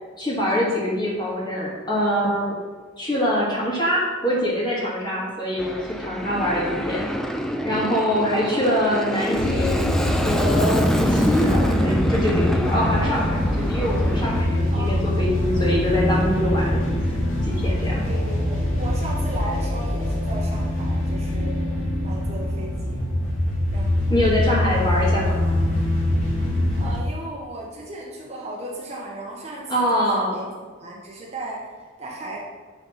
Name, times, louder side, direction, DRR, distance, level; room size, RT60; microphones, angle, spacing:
voice 1, 0.2-2.6 3.0-7.1 7.6-17.0 17.4-17.9 24.1-25.4 29.7-30.4, equal, 20° left, -5 dB, 2.3 m, -24 dB
Aircraft, 5.6-14.4, equal, ahead, 0.4 m, -26 dB
sound 1, 9.3-27.0, left 1 dB, 85° left, 2.7 m, -23 dB
voice 2, 14.7-15.2 18.0-21.6 22.0-23.0 23.7-24.0 26.8-30.5 30.8-32.4, right 1 dB, 30° right, -3 dB, 1.1 m, -36 dB
10.0 x 4.1 x 5.8 m, 1.4 s
head